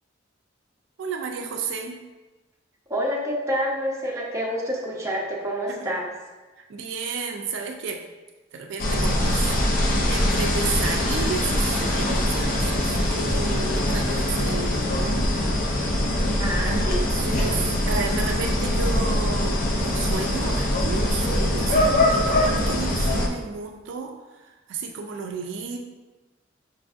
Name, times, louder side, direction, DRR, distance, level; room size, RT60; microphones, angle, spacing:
voice 1, 1.0-2.0 5.7-5.9 6.7-8.0 8.5-9.5 10.1-15.5 16.6-25.8, right 5 dB, 65° right, 3 dB, 0.3 m, -32 dB
voice 2, 2.9-6.1 16.4-17.0, equal, 15° right, -3 dB, 0.5 m, -27 dB
sound 1, 8.8-23.3, left 1 dB, 45° left, 0.4 m, -23 dB
5.2 x 2.5 x 2.3 m, 1.2 s
head